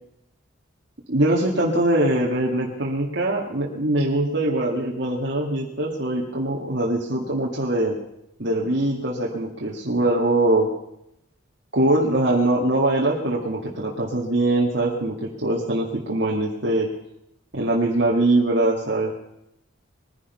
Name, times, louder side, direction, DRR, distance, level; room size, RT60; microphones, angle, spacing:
voice 1, 1.1-8.0 8.4-10.7 11.7-16.9 17.5-19.1, right 1 dB, 55° right, -3 dB, 1.9 m, -22 dB
21.5 x 10.5 x 5.5 m, 0.82 s
head